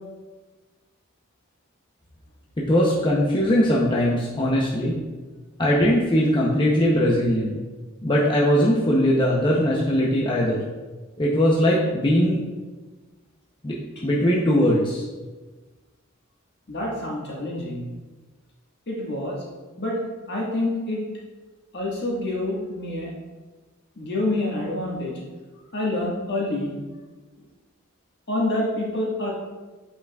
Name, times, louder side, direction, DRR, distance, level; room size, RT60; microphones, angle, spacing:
voice 1, 2.6-4.9 5.6-7.5 8.0-10.6 11.2-12.4 13.6-13.8 14.0-15.0, equal, 25° left, -4 dB, 0.7 m, -20 dB
voice 2, 16.7-17.9 18.9-19.4 19.8-20.0 20.3-21.1 21.7-23.1 24.0-25.2 25.7-26.7 28.3-29.4, left 1 dB, 55° left, -3 dB, 1.6 m, -27 dB
8.3 x 5.7 x 2.4 m, 1.3 s
head